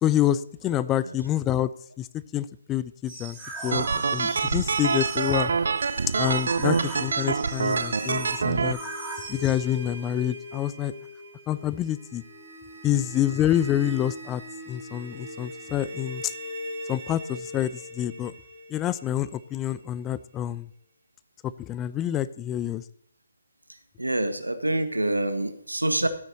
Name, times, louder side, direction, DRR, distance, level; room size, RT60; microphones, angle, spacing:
voice 1, 0.0-1.7 2.0-3.4 3.6-5.5 6.1-8.8 9.3-10.9 11.5-12.2 12.8-14.4 14.7-16.3 16.9-18.3 18.7-20.7 21.4-22.8, left 11 dB, 15° left, 16 dB, 0.3 m, -27 dB
sound 1, 3.0-9.5, right 2 dB, 10° right, 3.2 m, -39 dB
sound 2, 3.7-8.7, right 5 dB, 60° right, 0.3 m, -26 dB
sound 3, 5.2-20.1, equal, 35° right, 4.3 m, -41 dB
voice 2, 23.7-26.1, right 1 dB, 80° right, 10 dB, 1.3 m, -27 dB
13.0 x 9.4 x 2.9 m, 0.67 s
figure-of-eight pair, 140°, 0 cm